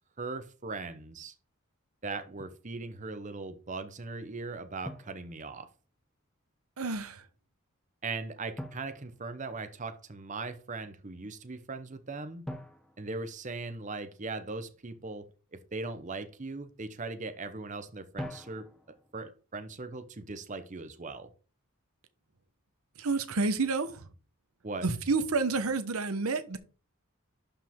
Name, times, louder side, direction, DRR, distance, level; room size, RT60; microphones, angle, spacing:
voice 1, 0.2-1.3 2.0-5.7 8.0-12.4 13.0-18.7 19.1-21.3 24.6-24.9, right 3 dB, 35° right, 0.7 m, -39 dB
Drum, 2.4-2.7 4.8-6.0 8.6-10.0 12.5-14.2 18.2-19.1, equal, 5° left, 0.8 m, -45 dB
voice 2, 6.8-7.2 23.0-24.0 24.8-26.6, right 3 dB, 80° right, 1.0 m, -29 dB
11.5 x 4.9 x 3.6 m
head